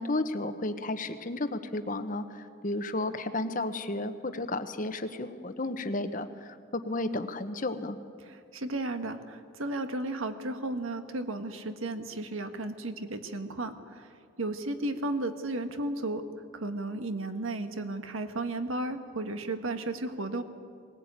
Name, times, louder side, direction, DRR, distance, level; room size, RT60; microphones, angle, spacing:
voice 1, 0.0-2.2 2.6-8.0, left 2 dB, 40° left, 9 dB, 1.1 m, -32 dB
voice 2, 8.3-14.1 14.4-16.2 16.5-20.4, right 2 dB, 80° right, 7 dB, 1.5 m, -34 dB
20.5 x 19.0 x 8.9 m, 2.3 s
head